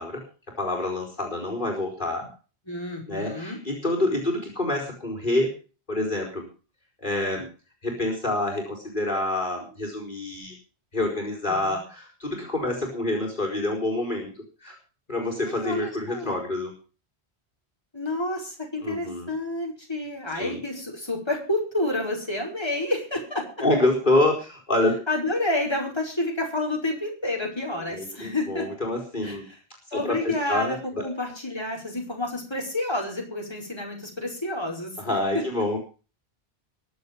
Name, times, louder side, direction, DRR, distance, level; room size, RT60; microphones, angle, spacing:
voice 1, 0.0-2.3 3.0-5.5 5.9-6.5 7.0-7.5 7.8-10.5 10.9-14.3 14.6-14.8 15.1-16.7 18.8-19.3 20.3-20.6 23.6-24.9 27.9-29.4 29.9-31.0 35.0-35.8, left 2 dB, 50° left, -2 dB, 4.8 m, -27 dB
voice 2, 2.7-3.6 11.5-11.8 15.4-16.3 17.9-23.4 25.1-28.7 29.2-29.6 29.9-35.0, left 2 dB, 25° left, -1 dB, 5.4 m, -29 dB
22.5 x 7.9 x 5.4 m, 0.36 s
omnidirectional pair, 1.1 m